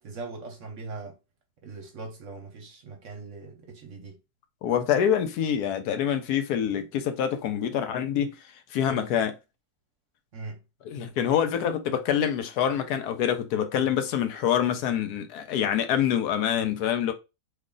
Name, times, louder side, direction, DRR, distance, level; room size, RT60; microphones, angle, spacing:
voice 1, 0.0-1.2 1.6-4.2 10.3-10.6, right 3 dB, 60° right, 1.0 m, -40 dB
voice 2, 4.6-8.4 8.7-9.3 10.9-17.1, left 9 dB, 80° left, 1.1 m, -26 dB
3.1 x 2.4 x 3.7 m
omnidirectional pair, 1.7 m